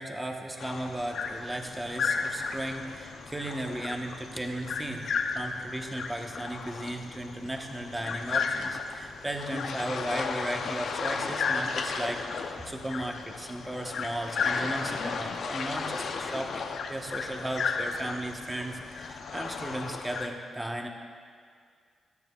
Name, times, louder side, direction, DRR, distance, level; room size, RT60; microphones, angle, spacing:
voice 1, 0.0-5.0 5.3-20.9, right 1 dB, 15° right, 3 dB, 1.1 m, -36 dB
sound 1, 0.6-20.3, left 5 dB, 70° left, 0.7 m, -34 dB
16.5 x 12.0 x 2.4 m, 2.1 s
cardioid pair, 75°, 0 cm